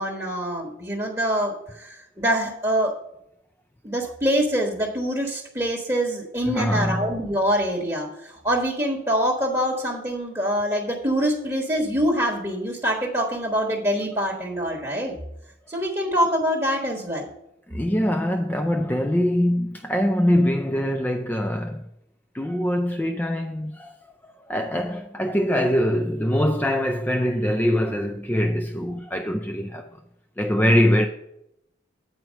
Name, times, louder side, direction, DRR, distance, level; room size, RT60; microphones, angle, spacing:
voice 1, 0.0-2.9 3.8-15.1 15.7-17.3, equal, 15° right, 1.2 m, -25 dB
voice 2, 6.5-7.1 17.7-21.8 22.3-23.9 24.2-30.0 30.4-31.1, equal, 10° left, 0.3 m, -23 dB
9.1 x 4.6 x 6.3 m
head